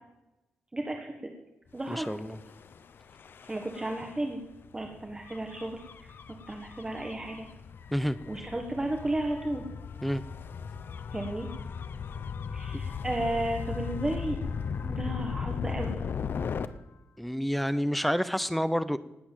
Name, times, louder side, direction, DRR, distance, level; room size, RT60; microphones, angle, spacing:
voice 1, 0.7-1.1 1.7-2.1 3.5-4.4 4.7-6.1 6.5-7.5 8.3-9.6 11.1-11.5 12.5-14.4 14.8-16.0, right 1 dB, 15° right, 2 dB, 1.6 m, -33 dB
Gull seagull / Waves surf / Siren, 1.9-16.7, left 6 dB, 55° left, 0.8 m, -37 dB
voice 2, 1.9-2.4 7.9-8.2 10.0-10.2 17.2-19.0, equal, ahead, 13 dB, 0.7 m, -28 dB
18.5 x 8.6 x 7.4 m, 0.96 s
wide cardioid pair, 135°, 4 cm